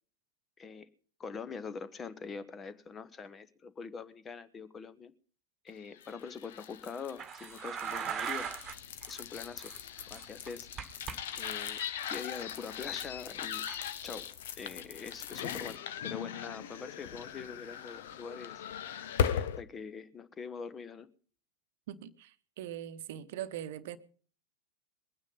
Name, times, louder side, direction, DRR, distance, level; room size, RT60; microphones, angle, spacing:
voice 1, 0.6-0.9 1.2-5.1 5.6-8.5 9.1-9.7 10.1-10.7 11.3-11.8 12.1-13.7 14.0-18.6 19.3-21.1, left 5 dB, 20° left, 1.1 m, -44 dB
sound 1, 6.0-19.6, left 9 dB, 55° left, 1.0 m, -39 dB
sound 2, 7.2-8.8 9.0-9.2 9.6-11.2 11.4-11.8 13.7-13.8, right 8 dB, 25° right, 1.5 m, -39 dB
voice 2, 21.9-24.0, right 11 dB, 55° right, 1.0 m, -41 dB
21.5 x 9.5 x 5.4 m
figure-of-eight pair, 90°, 0 cm